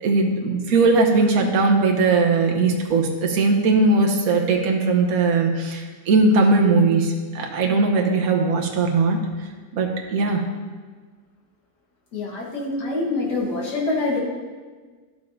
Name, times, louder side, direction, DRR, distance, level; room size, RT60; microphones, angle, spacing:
voice 1, 0.0-9.2 9.7-10.4, right 3 dB, 60° right, 1 dB, 1.3 m, -19 dB
voice 2, 12.1-14.2, left 3 dB, 70° left, -3 dB, 2.1 m, -25 dB
12.0 x 6.8 x 2.6 m, 1.4 s
omnidirectional pair, 1.9 m